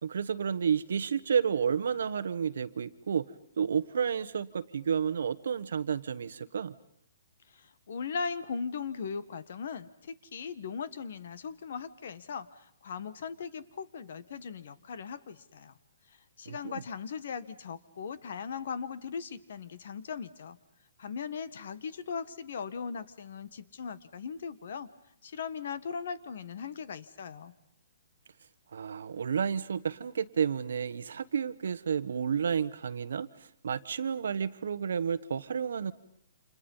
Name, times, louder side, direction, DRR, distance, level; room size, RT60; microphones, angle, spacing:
voice 1, 0.0-3.3 3.6-6.7 16.5-16.8 28.7-33.3 33.6-35.9, right 7 dB, 60° right, 14 dB, 1.2 m, -31 dB
voice 2, 7.5-12.5 12.8-15.7 16.4-20.6 21.0-24.9 25.2-27.5, left 6 dB, 45° left, 15 dB, 1.3 m, -38 dB
30.0 x 28.0 x 5.6 m, 0.69 s
hypercardioid pair, 180°, 0 cm